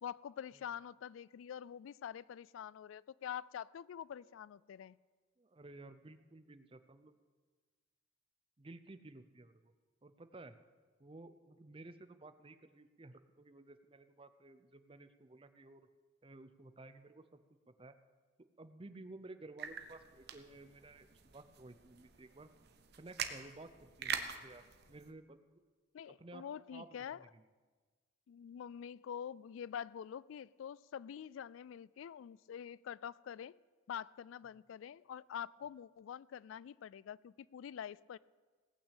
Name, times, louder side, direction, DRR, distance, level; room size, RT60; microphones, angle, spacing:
voice 1, 0.0-5.0 25.9-27.2 28.3-33.5 33.9-38.2, left 8 dB, 75° left, 22 dB, 0.3 m, -46 dB
voice 2, 5.4-7.1 8.6-9.7 10.0-10.6 11.0-15.9 16.2-17.4 17.7-18.0 18.6-22.5 23.0-25.4 26.0-26.4 26.7-27.4, right 2 dB, 25° right, 11 dB, 0.6 m, -54 dB
sound 1, 19.6-25.1, right 7 dB, 55° right, 0.9 m, -45 dB
18.0 x 6.1 x 8.2 m, 1.4 s
head